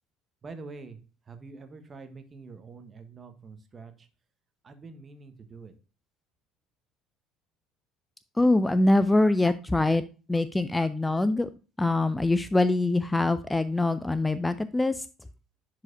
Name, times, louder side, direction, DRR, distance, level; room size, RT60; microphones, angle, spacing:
voice 1, 0.4-1.0 1.3-4.1 4.6-5.7, right 4 dB, 30° right, 8 dB, 1.2 m, -45 dB
voice 2, 8.4-10.0 10.3-11.5 11.8-15.0, left 2 dB, 10° left, 14 dB, 0.4 m, -24 dB
10.5 x 4.8 x 2.5 m, 0.34 s
figure-of-eight pair, 60°, 0 cm